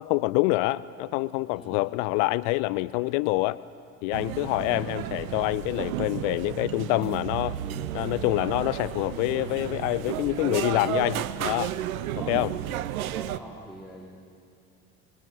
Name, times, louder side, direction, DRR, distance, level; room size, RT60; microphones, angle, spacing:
voice 1, 0.0-3.6 4.0-7.6 7.9-11.7 12.3-12.5, left 20 dB, 55° left, 17 dB, 0.7 m, -26 dB
sound 1, 4.1-13.4, right 12 dB, 70° right, 0.9 m, -33 dB
voice 2, 13.1-14.2, equal, ahead, -4 dB, 4.0 m, -45 dB
25.0 x 20.0 x 8.8 m, 2.4 s
figure-of-eight pair, 60°, 44 cm